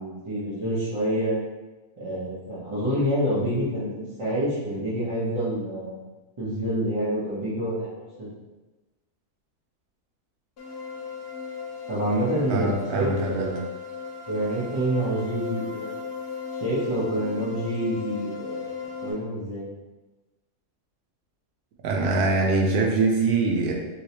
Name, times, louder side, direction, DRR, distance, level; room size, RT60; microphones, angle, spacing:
voice 1, 0.0-1.4 2.0-6.0 6.4-8.3 11.9-13.5 14.3-15.9 16.5-18.7 19.0-19.7, equal, 25° right, -10 dB, 0.6 m, -27 dB
sound 1, 10.6-19.1, left 5 dB, 75° left, 0.5 m, -36 dB
voice 2, 12.5-13.5 21.8-23.7, right 3 dB, 75° right, 0 dB, 1.1 m, -23 dB
3.1 x 3.0 x 2.8 m, 1.1 s
omnidirectional pair, 1.7 m